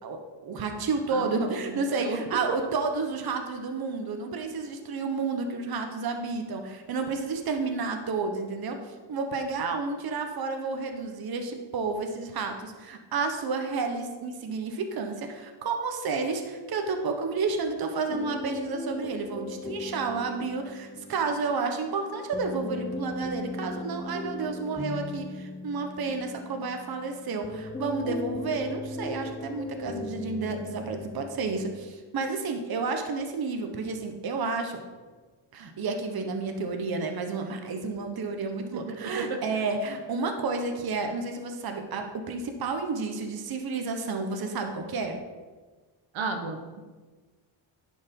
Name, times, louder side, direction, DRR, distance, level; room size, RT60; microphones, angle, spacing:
voice 1, 0.0-34.8 35.5-45.2, right 4 dB, 50° right, 5 dB, 1.1 m, -31 dB
voice 2, 1.1-2.2 38.7-39.4 46.1-46.8, right 4 dB, 70° right, 5 dB, 1.1 m, -34 dB
sound 1, 18.1-31.9, left 2 dB, 10° left, 0.4 m, -38 dB
10.5 x 5.3 x 5.4 m, 1.3 s
cardioid pair, 130°, 49 cm